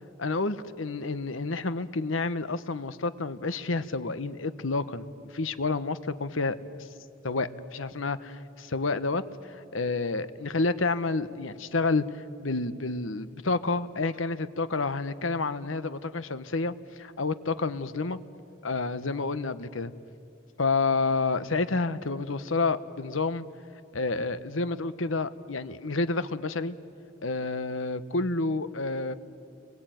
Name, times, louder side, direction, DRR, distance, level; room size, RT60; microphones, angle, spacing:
voice 1, 0.2-5.1 5.3-6.6 7.2-18.2 18.6-19.9 20.6-23.5 23.9-26.8 27.2-29.1, left 3 dB, 85° left, 13 dB, 1.1 m, -29 dB
29.5 x 21.5 x 9.2 m, 2.5 s
head